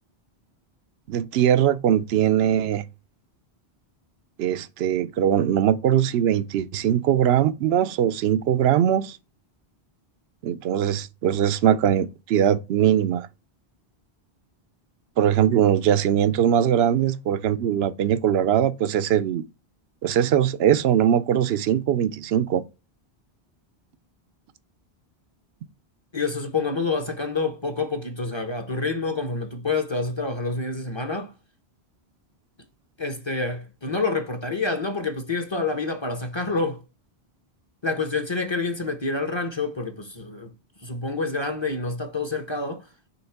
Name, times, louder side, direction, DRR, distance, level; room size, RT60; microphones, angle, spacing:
voice 1, 1.1-2.8 4.4-9.2 10.4-13.3 15.2-19.4 20.0-22.6, right 10 dB, 80° right, 0.8 m, -21 dB
voice 2, 26.1-31.3 33.0-36.8 37.8-40.5 40.8-42.8, left 3 dB, 30° left, 0.9 m, -27 dB
7.1 x 3.2 x 4.6 m
omnidirectional pair, 1.1 m